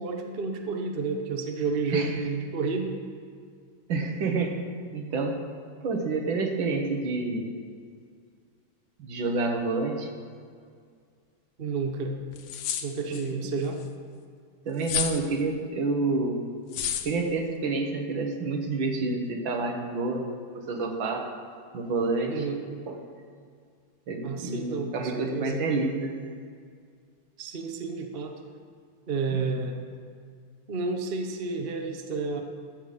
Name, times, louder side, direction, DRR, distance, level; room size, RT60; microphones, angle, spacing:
voice 1, 0.0-3.0 11.6-12.2 12.8-13.8 22.3-22.6 24.2-25.6 27.4-28.4 29.1-29.8 30.7-32.4, right 4 dB, 40° right, 3 dB, 0.8 m, -31 dB
voice 2, 3.9-4.6 4.9-5.4 5.8-7.5 9.0-10.1 13.1-13.5 14.7-16.4 17.0-20.3 20.5-21.3 21.7-22.4 22.9-23.0 24.1-26.1 29.3-29.6, right 3 dB, 70° right, 3 dB, 1.9 m, -28 dB
sound 1, 11.9-12.0 12.3-13.2 14.8-15.2 16.7-17.1, left 9 dB, 75° left, 1.4 m, -30 dB
15.0 x 5.4 x 6.6 m, 2.1 s
omnidirectional pair, 2.2 m